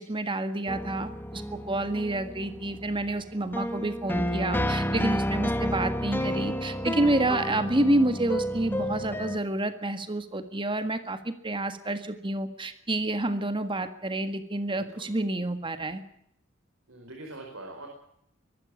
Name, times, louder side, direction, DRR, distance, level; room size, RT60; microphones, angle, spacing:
voice 1, 0.0-16.0, right 1 dB, 25° right, 9 dB, 1.7 m, -29 dB
sound 1, 0.7-9.4, equal, 10° left, 1.2 m, -31 dB
voice 2, 14.7-15.1 16.9-17.9, right 2 dB, 70° right, 1 dB, 4.7 m, -43 dB
23.0 x 12.5 x 9.5 m, 0.73 s
head